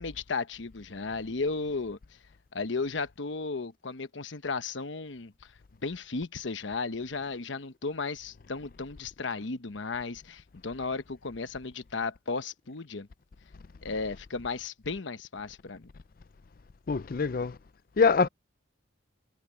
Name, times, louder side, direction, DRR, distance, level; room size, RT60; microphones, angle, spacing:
voice 1, 0.0-2.0 2.5-5.3 5.8-13.1 13.8-15.9, left 4 dB, 75° left, 1.0 m, -34 dB
voice 2, 16.9-17.6 18.0-18.3, left 5 dB, 45° left, 0.4 m, -24 dB
head